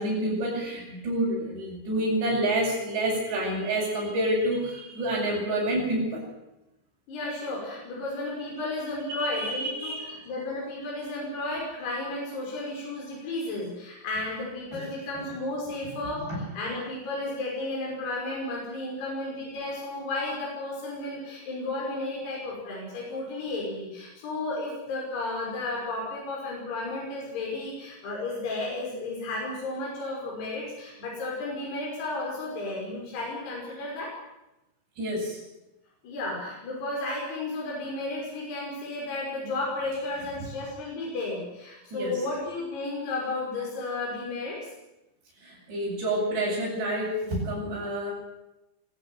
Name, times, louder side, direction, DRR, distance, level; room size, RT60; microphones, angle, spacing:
voice 1, 0.0-6.2 9.1-10.2 16.3-16.4 35.0-35.4 41.9-42.1 45.4-48.1, right 1 dB, 70° right, -7 dB, 9.8 m, -28 dB
voice 2, 7.1-16.2 16.5-34.1 36.0-44.6, left 2 dB, 65° left, -4 dB, 7.8 m, -33 dB
23.0 x 14.5 x 9.6 m, 0.93 s
omnidirectional pair, 5.1 m